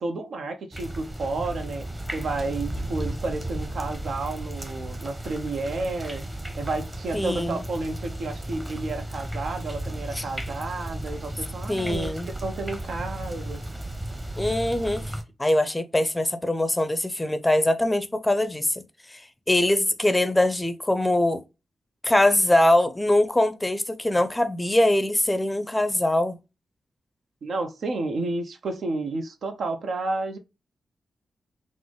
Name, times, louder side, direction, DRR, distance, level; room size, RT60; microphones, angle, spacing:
voice 1, 0.0-1.9 2.1-6.2 6.5-12.1 12.4-13.6 27.4-30.4, right 3 dB, 70° right, 0.5 m, -31 dB
sound 1, 0.7-15.2, right 1 dB, 15° right, 0.9 m, -34 dB
voice 2, 7.1-7.6 10.2-10.3 11.7-12.3 14.4-18.8 19.1-19.2 19.5-21.4 22.0-26.4, left 1 dB, 15° left, 0.5 m, -23 dB
3.8 x 2.0 x 3.1 m
supercardioid pair, 50°, 0 cm